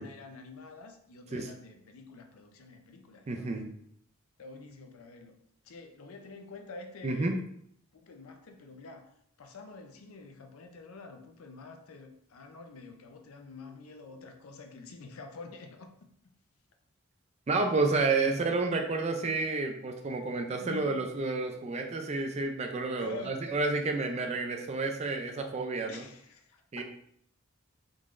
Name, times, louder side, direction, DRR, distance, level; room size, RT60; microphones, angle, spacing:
voice 1, 0.0-3.5 4.4-5.4 5.6-7.4 7.9-9.1 9.4-15.9 20.6-21.0 23.0-23.5 25.9-26.8, left 3 dB, 85° left, 5 dB, 0.5 m, -47 dB
voice 2, 3.3-3.7 7.0-7.3 17.5-26.0 26.7-26.8, right 3 dB, 30° right, 4 dB, 0.3 m, -30 dB
3.8 x 3.1 x 2.4 m, 0.69 s
head